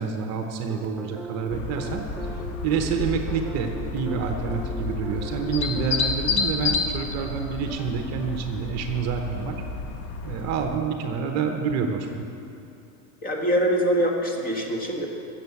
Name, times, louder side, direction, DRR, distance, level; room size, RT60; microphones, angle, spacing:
voice 1, 0.0-2.0 2.6-9.6 10.2-12.3, right 6 dB, 40° right, 5 dB, 1.0 m, -28 dB
sound 1, 0.7-10.5, right 2 dB, 5° right, 0.6 m, -41 dB
sound 2, 1.5-10.8, left 4 dB, 35° left, 0.9 m, -30 dB
voice 2, 13.2-15.1, equal, 20° left, 1 dB, 1.5 m, -24 dB
15.5 x 7.4 x 7.1 m, 2.8 s
supercardioid pair, 155°, 41 cm